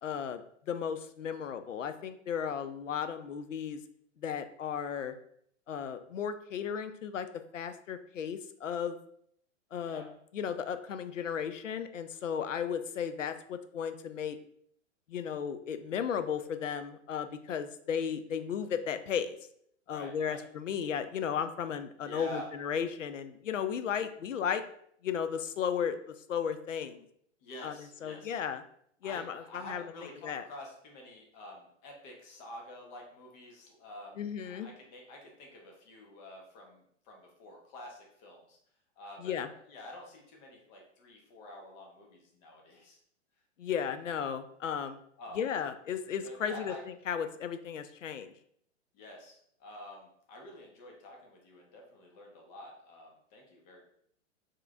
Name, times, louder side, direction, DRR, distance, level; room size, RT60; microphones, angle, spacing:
voice 1, 0.0-0.4 0.7-3.8 4.2-5.1 5.7-7.3 7.5-9.0 9.7-10.1 10.3-14.4 15.1-19.4 19.9-24.6 25.0-26.0 26.3-27.1 27.6-28.6 29.0-29.8 30.2-30.5 34.2-34.7 39.2-39.5 43.6-45.0 45.3-46.7 47.1-48.3, left 7 dB, 80° left, 10 dB, 0.5 m, -35 dB
voice 2, 19.9-20.4 22.0-22.5 27.4-28.4 29.0-38.6 39.0-43.0 45.2-45.4 46.2-46.8 48.9-53.8, left 1 dB, 35° left, 0 dB, 1.1 m, -48 dB
4.6 x 2.9 x 2.4 m, 0.67 s
figure-of-eight pair, 105°, 38 cm